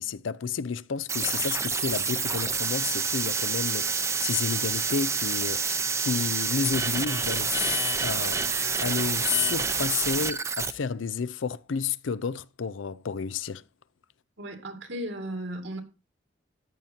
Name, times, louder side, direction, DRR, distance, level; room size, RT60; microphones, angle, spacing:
voice 1, 0.0-8.4 8.8-13.6, left 6 dB, 85° left, 0.5 m, -31 dB
sound 1, 1.1-10.7, right 5 dB, 15° right, 0.6 m, -28 dB
voice 2, 14.4-15.8, right 1 dB, 80° right, 2.3 m, -35 dB
14.0 x 10.5 x 2.8 m
head